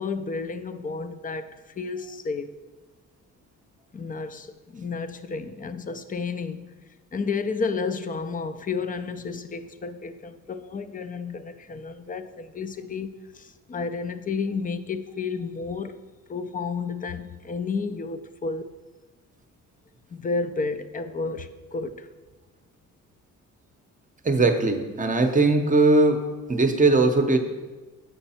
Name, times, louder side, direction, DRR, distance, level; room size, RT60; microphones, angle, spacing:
voice 1, 0.0-2.5 3.9-6.7 7.1-16.0 16.3-18.7 20.1-22.1, left 4 dB, 25° left, 0.5 m, -31 dB
voice 2, 24.2-26.2 26.5-27.4, right 3 dB, 25° right, 0.7 m, -19 dB
8.0 x 5.2 x 4.3 m
cardioid pair, 100°, 32 cm